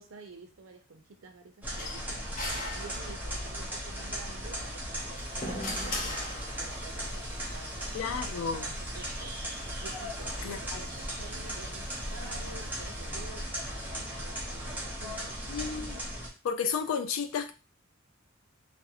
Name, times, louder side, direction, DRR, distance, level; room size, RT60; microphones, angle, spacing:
voice 1, 0.0-2.3 2.7-6.0 6.6-8.0 8.5-9.3 9.8-15.4, right 3 dB, 85° right, 0.5 m, -50 dB
sound 1, 1.6-16.3, equal, 10° right, 0.6 m, -37 dB
sound 2, 1.8-3.5 4.9-6.9, left 1 dB, 40° left, 0.6 m, -38 dB
sound 3, 5.1-13.3, right 2 dB, 45° right, 0.7 m, -52 dB
voice 2, 7.9-8.7 10.4-10.8 15.5-16.0 16.4-17.5, left 6 dB, 85° left, 0.3 m, -32 dB
2.5 x 2.0 x 2.8 m
head